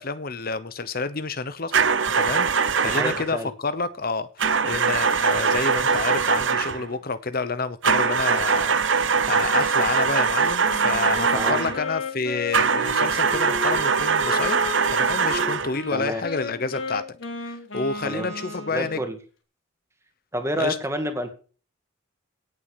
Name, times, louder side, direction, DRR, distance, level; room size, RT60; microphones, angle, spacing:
voice 1, 0.0-1.8 2.2-2.5 2.8-14.6 14.9-17.2 17.4-19.0 20.6-20.8, left 4 dB, 45° left, 0.9 m, -29 dB
sound 1, 1.7-3.3 4.4-6.9 7.8-11.8 12.5-15.8, right 5 dB, 65° right, 0.9 m, -22 dB
voice 2, 2.8-3.5 11.3-11.6 15.9-16.2 18.0-18.3 18.7-19.2 20.3-21.3, equal, 15° right, 2.3 m, -28 dB
Wind instrument woodwind instrument, 10.6-19.0, left 2 dB, 65° left, 3.8 m, -33 dB
17.5 x 7.3 x 6.8 m
head